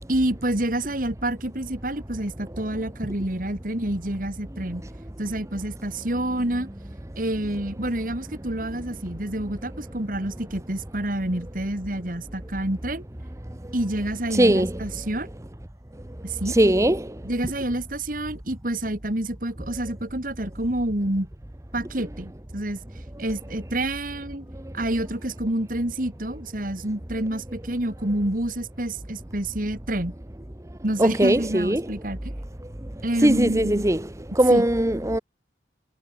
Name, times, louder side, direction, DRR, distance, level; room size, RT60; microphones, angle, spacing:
voice 1, 0.1-4.8 5.2-6.7 7.2-13.0 13.7-15.3 16.2-16.6 17.2-21.3 21.7-22.8 23.2-24.5 24.7-30.2 30.8-32.4 33.0-33.9 34.5-34.7, right 1 dB, 50° right, 2.5 m, -28 dB
voice 2, 14.3-14.7 16.5-17.2 24.5-24.6 31.0-31.8 33.2-34.0 34.3-35.2, right 1 dB, 15° right, 1.0 m, -20 dB
head